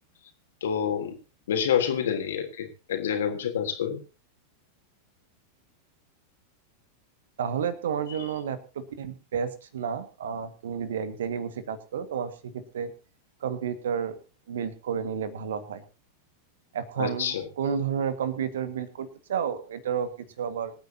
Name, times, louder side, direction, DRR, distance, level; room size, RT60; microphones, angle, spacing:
voice 1, 0.6-1.1 1.5-4.0 17.0-17.5, left 8 dB, 60° left, 5 dB, 3.3 m, -27 dB
voice 2, 7.4-12.9 13.4-14.2 14.5-15.8 16.7-20.1 20.4-20.7, right 7 dB, 60° right, 12 dB, 1.8 m, -31 dB
26.0 x 9.4 x 2.9 m, 0.34 s
figure-of-eight pair, 90°, 0 cm